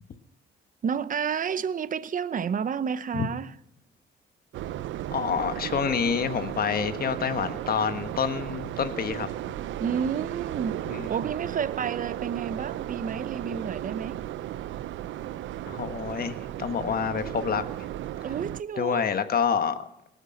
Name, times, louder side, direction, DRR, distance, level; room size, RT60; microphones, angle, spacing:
voice 1, 0.8-3.5 9.8-14.3 18.2-19.1, right 7 dB, 45° right, 0.8 m, -30 dB
sound 1, 4.5-18.6, right 13 dB, 75° right, 0.5 m, -35 dB
voice 2, 5.1-9.3 10.8-11.1 15.7-17.6 18.8-19.8, left 7 dB, 50° left, 1.4 m, -27 dB
18.5 x 8.0 x 6.5 m
cardioid pair, 90°, 20 cm